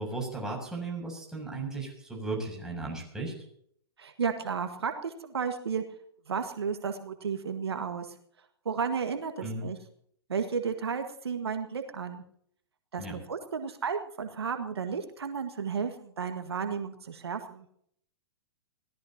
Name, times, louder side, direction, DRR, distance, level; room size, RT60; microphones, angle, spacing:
voice 1, 0.0-3.3 9.4-9.6 13.0-13.2, right 3 dB, 5° right, -1 dB, 7.1 m, -35 dB
voice 2, 4.0-5.8 6.3-8.2 8.7-9.8 10.3-12.2 12.9-17.7, right 6 dB, 75° right, 6 dB, 1.7 m, -33 dB
23.0 x 17.0 x 2.9 m, 0.66 s
figure-of-eight pair, 115°, 13 cm